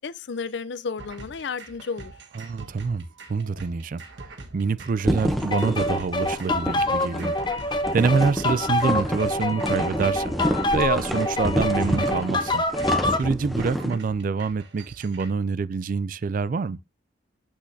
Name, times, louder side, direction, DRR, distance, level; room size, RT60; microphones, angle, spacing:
voice 1, 0.0-2.1, left 5 dB, 65° left, 0.5 m, -32 dB
sound 1, 1.0-15.3, right 3 dB, 70° right, 1.4 m, -45 dB
voice 2, 2.4-4.0 4.5-7.4 7.7-10.3 10.7-16.8, right 5 dB, 45° right, 0.4 m, -26 dB
sound 2, 5.0-14.0, equal, ahead, 0.9 m, -28 dB
sound 3, 5.5-13.3, left 2 dB, 25° left, 0.8 m, -26 dB
8.2 x 6.1 x 2.7 m
head